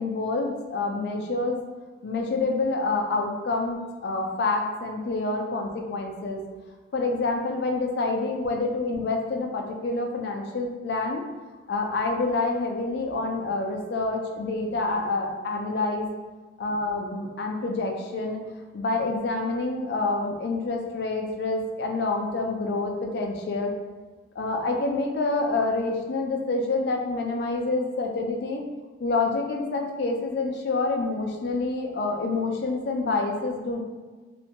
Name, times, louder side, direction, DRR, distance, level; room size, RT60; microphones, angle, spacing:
voice 1, 0.0-1.6 2.0-6.4 6.9-11.2 11.7-16.1 16.6-18.4 18.7-23.7 24.4-28.6 29.0-33.8, left 3 dB, 60° left, 2 dB, 0.4 m, -27 dB
2.5 x 2.1 x 2.8 m, 1.3 s
head